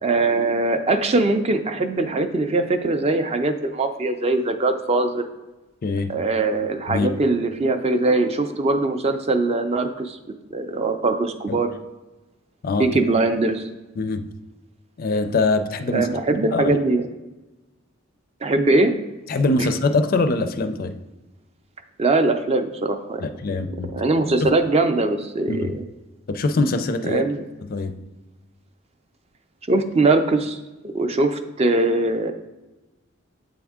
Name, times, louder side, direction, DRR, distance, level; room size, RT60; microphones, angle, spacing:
voice 1, 0.0-5.3 6.1-10.2 10.5-11.7 12.8-13.7 15.9-17.1 18.4-18.9 19.6-19.7 22.0-23.2 23.9-25.8 27.0-27.4 29.7-32.3, right 2 dB, 30° right, 8 dB, 0.4 m, -21 dB
voice 2, 15.0-16.1 16.5-16.8 19.3-20.9 23.2-23.9 24.4-24.5 25.5-25.7 26.3-27.2 27.7-27.9, left 3 dB, 45° left, 9 dB, 0.4 m, -23 dB
7.8 x 3.5 x 3.6 m, 1.1 s
head